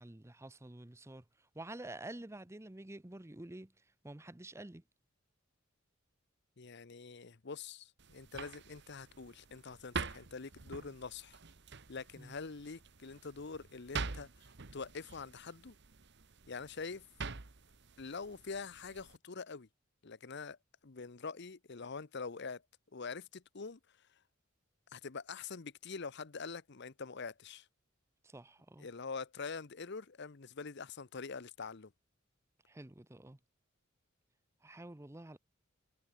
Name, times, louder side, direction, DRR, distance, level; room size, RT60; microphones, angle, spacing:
voice 1, 0.0-3.7 4.0-4.8 12.2-12.3 28.2-28.9 32.7-33.4 34.6-35.4, right 1 dB, 15° right, 0.7 m, -49 dB
voice 2, 6.6-11.4 11.9-14.3 14.7-15.7 16.5-17.0 18.0-19.7 20.0-20.6 20.8-22.6 22.9-23.8 24.9-27.7 28.8-31.9, left 4 dB, 55° left, 0.8 m, -45 dB
sound 1, 8.0-19.2, right 4 dB, 55° right, 1.3 m, -46 dB
head